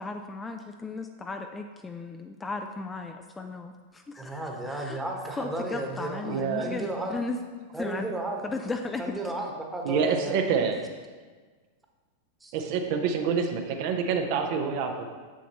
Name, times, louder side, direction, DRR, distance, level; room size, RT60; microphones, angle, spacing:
voice 1, 0.0-4.4 4.7-5.0 5.4-7.4 7.8-8.1 8.4-9.1, left 3 dB, 15° left, 5 dB, 0.4 m, -35 dB
voice 2, 4.2-7.2 7.7-8.4 9.0-10.7 12.4-12.5, right 1 dB, 10° right, 0 dB, 1.2 m, -34 dB
voice 3, 6.2-6.6 9.8-10.8 12.5-14.9, right 6 dB, 55° right, 4 dB, 0.7 m, -27 dB
7.1 x 7.0 x 3.0 m, 1.4 s
hypercardioid pair, 95°, 0 cm